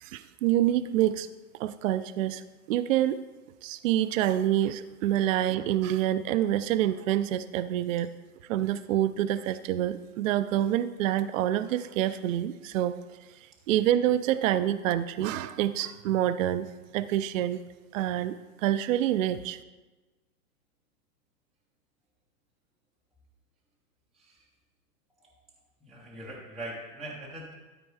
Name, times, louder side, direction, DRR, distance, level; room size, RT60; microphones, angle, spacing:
voice 1, 0.0-1.3 1.6-2.4 2.7-3.2 3.6-8.1 8.5-13.0 13.7-16.7 16.9-17.6 17.9-19.6, right 12 dB, 60° right, 13 dB, 0.5 m, -27 dB
voice 2, 25.9-27.5, right 1 dB, ahead, -6 dB, 0.4 m, -41 dB
12.5 x 4.2 x 4.7 m, 1.2 s
hypercardioid pair, 135°, 46 cm